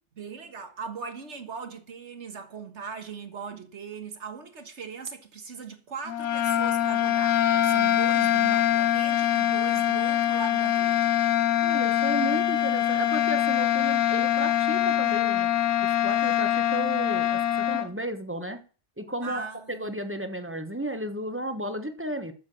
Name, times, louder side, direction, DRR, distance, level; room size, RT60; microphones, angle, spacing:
voice 1, 0.2-11.2 19.2-20.2, right 5 dB, 70° right, 1.9 m, -39 dB
sound 1, 6.1-17.9, left 11 dB, 80° left, 1.1 m, -24 dB
voice 2, 11.6-15.5 16.0-18.6 19.0-22.3, right 1 dB, 10° right, 1.1 m, -33 dB
8.1 x 7.4 x 7.6 m
omnidirectional pair, 1.2 m